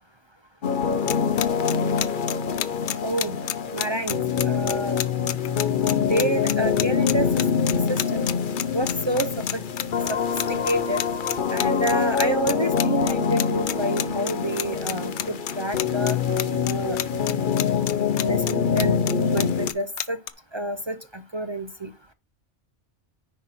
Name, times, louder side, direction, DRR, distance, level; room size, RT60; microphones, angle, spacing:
sound 1, 0.6-19.7, left 6 dB, 50° left, 0.9 m, -25 dB
sound 2, 1.1-20.3, left 11 dB, 70° left, 0.9 m, -28 dB
voice 1, 3.0-3.4 3.7-4.2 4.4-5.0 6.1-7.4 7.9-8.3 8.7-9.6 10.1-10.2 10.5-11.0 11.5-16.2 16.6-17.0 18.2-20.2 20.5-21.9, right 1 dB, 35° right, 11 dB, 0.4 m, -28 dB
10.0 x 4.5 x 4.3 m, 0.30 s
omnidirectional pair, 1.2 m